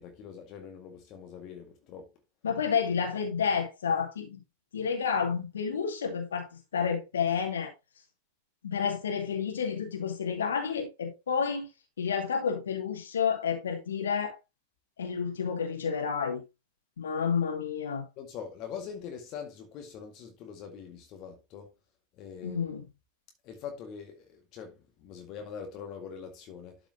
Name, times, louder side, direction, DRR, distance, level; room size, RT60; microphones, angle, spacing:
voice 1, 0.0-2.1 18.2-21.7 22.2-22.6 23.4-26.8, left 7 dB, 40° left, 2.0 m, -43 dB
voice 2, 2.4-4.4 4.7-7.7 8.6-11.7 12.0-14.4 15.0-16.4 17.0-18.0 22.4-22.8, left 6 dB, 65° left, 2.3 m, -30 dB
12.0 x 4.9 x 2.9 m
figure-of-eight pair, 90°, 0 cm